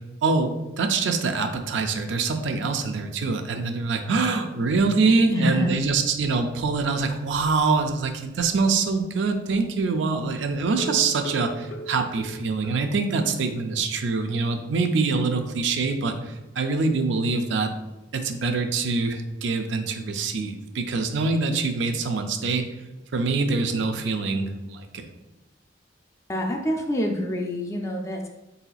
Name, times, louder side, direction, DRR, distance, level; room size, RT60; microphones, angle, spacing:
voice 1, 0.8-17.7 18.1-22.6 23.1-25.1, right 4 dB, 70° right, 6 dB, 0.4 m, -24 dB
voice 2, 5.3-5.8 26.3-28.3, left 1 dB, 15° left, 2 dB, 0.4 m, -26 dB
sound 1, 10.8-13.3 13.6-13.7 14.0-14.1 14.5-14.6, right 2 dB, 80° left, 0.6 m, -38 dB
4.1 x 3.9 x 2.3 m, 1.0 s
head